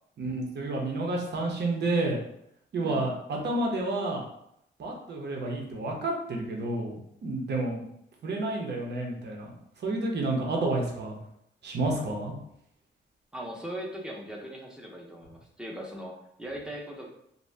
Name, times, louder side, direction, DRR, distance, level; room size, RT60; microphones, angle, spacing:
voice 1, 0.2-2.2 2.7-4.2 4.8-7.8 8.2-11.2 11.6-12.3, right 2 dB, 60° right, 0 dB, 0.7 m, -30 dB
voice 2, 2.8-3.1 13.3-17.1, equal, 5° right, -1 dB, 0.6 m, -39 dB
2.6 x 2.1 x 3.2 m, 0.76 s
wide cardioid pair, 125°, 20 cm